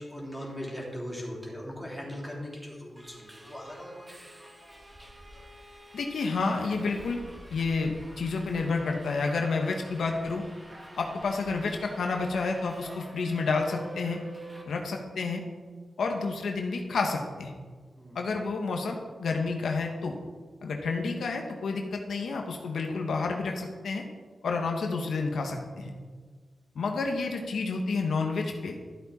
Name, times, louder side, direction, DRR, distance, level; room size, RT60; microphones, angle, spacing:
voice 1, 0.0-4.2 18.0-18.2, equal, ahead, -4 dB, 3.6 m, -39 dB
Subway metro underground, 3.0-14.6, right 1 dB, 15° right, 1.8 m, -48 dB
voice 2, 5.9-7.2 7.5-10.4 10.9-14.2 14.7-15.4 16.0-17.5 18.1-20.1 20.6-24.0 24.4-25.9 26.7-28.8, left 4 dB, 85° left, 2 dB, 1.3 m, -30 dB
13.0 x 8.2 x 4.3 m, 1.5 s
wide cardioid pair, 90°, 0 cm